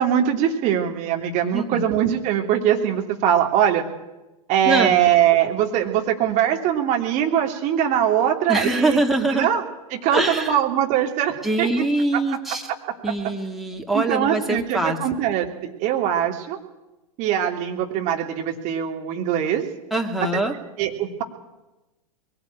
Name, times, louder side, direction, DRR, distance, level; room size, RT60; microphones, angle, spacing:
voice 1, 0.0-3.8 4.5-9.6 9.9-11.9 13.9-16.6 17.2-19.6 20.8-21.2, right 10 dB, 35° right, 2 dB, 3.1 m, -22 dB
voice 2, 8.5-9.5 10.1-10.5 11.4-12.6 13.0-15.0 19.9-20.5, right 2 dB, ahead, 1 dB, 2.4 m, -23 dB
22.0 x 17.0 x 8.8 m, 1.0 s
figure-of-eight pair, 95°, 20 cm